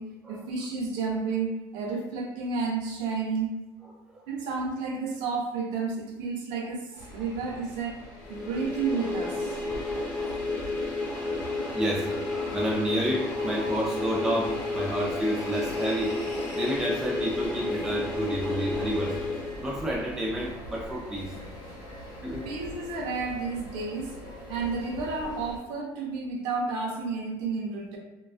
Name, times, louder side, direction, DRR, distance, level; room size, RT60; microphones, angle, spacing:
voice 1, 0.0-3.5 4.3-8.0 8.3-9.6 22.4-24.2 24.5-28.0, right 4 dB, 75° right, 0 dB, 0.6 m, -31 dB
voice 2, 3.8-4.2 11.7-12.1 12.5-16.2 16.5-19.2 19.6-21.3 22.2-22.5, equal, 5° right, -3 dB, 0.4 m, -30 dB
sound 1, 7.0-25.6, left 1 dB, 70° left, 0.9 m, -42 dB
sound 2, 8.3-20.1, left 2 dB, 15° left, 0.9 m, -31 dB
2.4 x 2.2 x 2.4 m, 1.1 s
cardioid pair, 165°, 8 cm